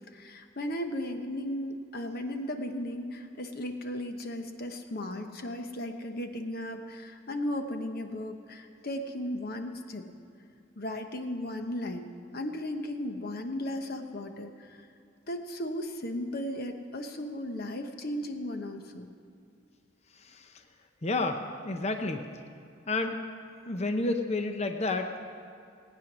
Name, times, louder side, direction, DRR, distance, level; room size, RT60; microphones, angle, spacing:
voice 1, 0.1-10.0 10.7-12.1 12.3-14.9 15.3-19.1, left 1 dB, 50° left, 5 dB, 1.0 m, -36 dB
voice 2, 20.2-20.5 21.0-22.3 22.9-23.2 23.7-25.2, left 2 dB, 35° left, 6 dB, 0.7 m, -30 dB
19.0 x 9.1 x 6.1 m, 2.4 s
head